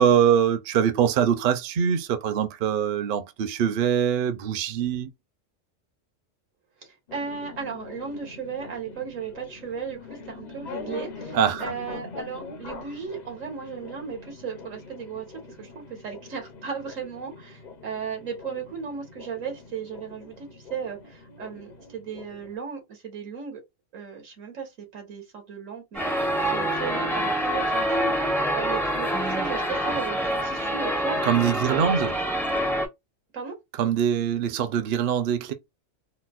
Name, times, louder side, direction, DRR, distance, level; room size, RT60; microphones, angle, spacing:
voice 1, 0.0-5.1 11.3-11.6 31.2-32.1 33.8-35.5, right 8 dB, 55° right, 0.6 m, -23 dB
voice 2, 6.8-23.6 23.9-31.2 31.7-32.2 33.3-33.5, right 6 dB, 90° right, 1.7 m, -36 dB
sound 1, 7.1-22.6, left 4 dB, 45° left, 0.6 m, -43 dB
sound 2, 25.9-32.9, equal, 5° left, 0.4 m, -26 dB
4.1 x 2.1 x 2.4 m
omnidirectional pair, 1.3 m